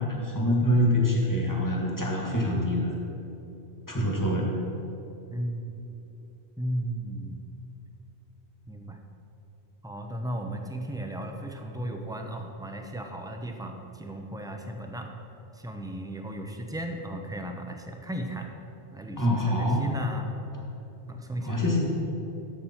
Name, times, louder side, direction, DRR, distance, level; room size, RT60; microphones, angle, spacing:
voice 1, 0.0-2.9 3.9-4.5 19.2-19.9 21.4-21.8, left 1 dB, 15° left, -2 dB, 1.7 m, -25 dB
voice 2, 5.3-5.8 6.6-7.5 8.7-9.0 9.8-15.1 15.5-18.5 18.9-20.3 21.1-21.6, right 1 dB, 5° right, 3 dB, 0.6 m, -35 dB
12.0 x 7.4 x 4.4 m, 3.0 s
omnidirectional pair, 1.2 m